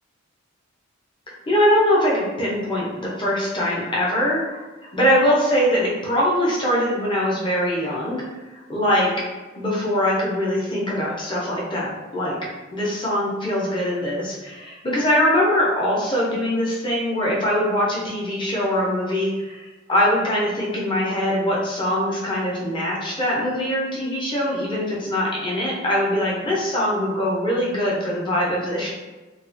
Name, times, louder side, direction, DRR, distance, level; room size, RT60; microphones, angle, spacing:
voice 1, 1.5-4.4 4.8-8.2 8.5-9.1 9.6-12.4 12.7-28.9, equal, 25° left, -5 dB, 0.6 m, -22 dB
2.3 x 2.3 x 2.5 m, 1.2 s
head